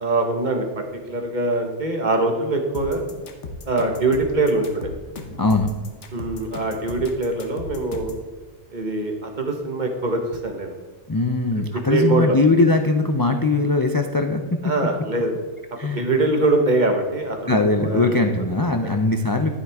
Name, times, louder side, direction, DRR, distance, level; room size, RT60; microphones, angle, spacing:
voice 1, 0.0-3.1 3.7-4.9 6.1-8.1 8.7-10.7 11.9-12.4 14.6-15.3 15.9-18.2 18.8-18.9, right 2 dB, 40° right, 3 dB, 1.4 m, -23 dB
sound 1, 2.7-8.3, left 3 dB, 80° left, 1.4 m, -36 dB
voice 2, 5.4-5.7 11.1-14.4 15.8-16.1 17.5-19.5, left 3 dB, 35° left, 5 dB, 0.3 m, -20 dB
10.5 x 9.8 x 3.5 m, 1.4 s
omnidirectional pair, 1.2 m